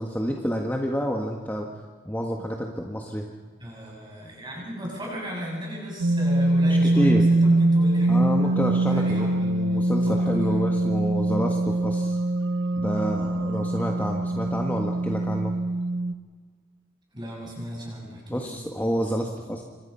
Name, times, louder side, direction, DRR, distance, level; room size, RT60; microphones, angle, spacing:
voice 1, 0.0-1.7 2.0-3.3 7.0-7.2 8.1-12.2 12.7-15.5 18.3-19.6, equal, 10° left, 1 dB, 1.5 m, -28 dB
voice 2, 3.6-9.5 10.0-10.6 17.1-18.5, equal, 25° right, -2 dB, 7.5 m, -36 dB
sound 1, 6.0-16.1, right 2 dB, 70° right, 1.0 m, -23 dB
27.5 x 25.5 x 5.7 m, 1.6 s
head